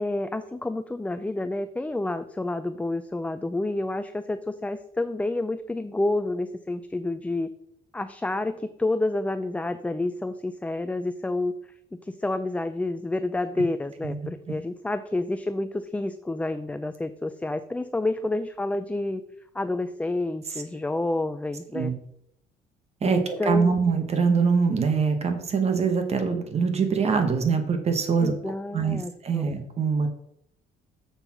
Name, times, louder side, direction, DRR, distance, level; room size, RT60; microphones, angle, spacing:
voice 1, 0.0-7.5 7.9-11.5 11.9-19.2 19.5-21.9 23.0-23.7 28.2-29.5, left 2 dB, 10° left, 10 dB, 0.4 m, -29 dB
voice 2, 23.0-28.3 28.7-29.0 29.2-30.1, right 5 dB, 40° right, 7 dB, 1.3 m, -23 dB
6.9 x 5.5 x 6.0 m, 0.74 s
cardioid pair, 110°, 17 cm